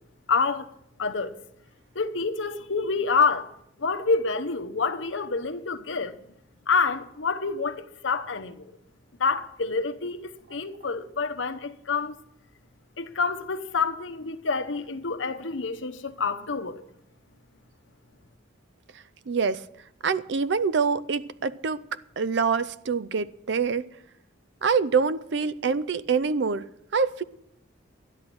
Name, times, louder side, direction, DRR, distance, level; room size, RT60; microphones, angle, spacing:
voice 1, 0.3-0.7 1.0-1.3 1.9-3.5 3.8-6.2 6.7-8.7 9.2-10.2 10.5-12.2 13.0-16.8, left 4 dB, 75° left, 0.9 m, -27 dB
voice 2, 19.3-19.6 20.0-23.9 24.6-26.7 26.9-27.2, right 5 dB, 65° right, 0.5 m, -25 dB
12.0 x 10.5 x 6.1 m
head